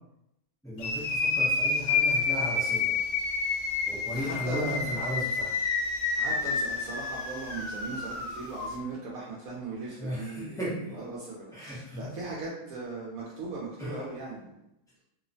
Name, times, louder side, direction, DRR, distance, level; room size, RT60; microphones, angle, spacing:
voice 1, 0.6-3.0 3.8-5.6 10.0-11.0 11.5-12.2 13.8-14.0, equal, 5° left, -9 dB, 0.5 m, -35 dB
sound 1, 0.8-8.7, left 4 dB, 60° left, 0.6 m, -29 dB
voice 2, 4.1-4.9 6.2-14.5, right 3 dB, 80° right, -5 dB, 1.0 m, -38 dB
2.9 x 2.0 x 2.5 m, 0.83 s
omnidirectional pair, 1.5 m